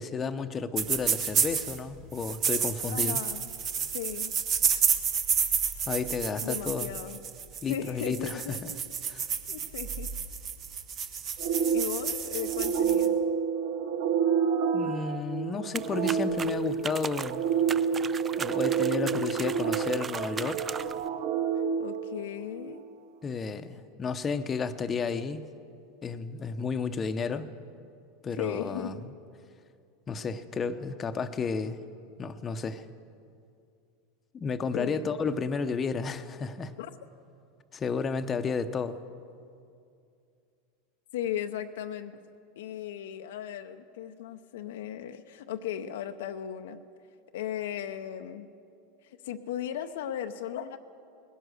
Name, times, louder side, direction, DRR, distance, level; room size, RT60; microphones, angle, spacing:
voice 1, 0.0-3.2 5.9-6.9 7.6-8.7 9.1-9.3 14.7-17.5 18.4-20.6 23.2-25.4 26.0-27.5 28.2-29.0 30.1-31.8 32.2-32.9 34.3-36.7 37.7-39.0, left 5 dB, 30° left, 9 dB, 0.8 m, -32 dB
sound 1, 0.8-1.8 2.2-13.1, right 7 dB, 45° right, 1.3 m, -30 dB
voice 2, 2.9-3.5 3.9-4.3 6.4-7.2 7.6-8.8 9.5-10.1 11.7-13.2 21.8-22.8 28.4-28.9 34.7-35.1 36.8-36.9 41.1-42.2 42.6-46.8 47.3-48.5 49.2-50.8, left 10 dB, 75° left, 8 dB, 0.6 m, -36 dB
sound 2, 11.4-22.7, right 7 dB, 65° right, 1.1 m, -29 dB
sound 3, 15.7-21.1, right 6 dB, 25° right, 0.4 m, -38 dB
19.5 x 11.0 x 6.5 m, 2.5 s
hypercardioid pair, 95°, 0 cm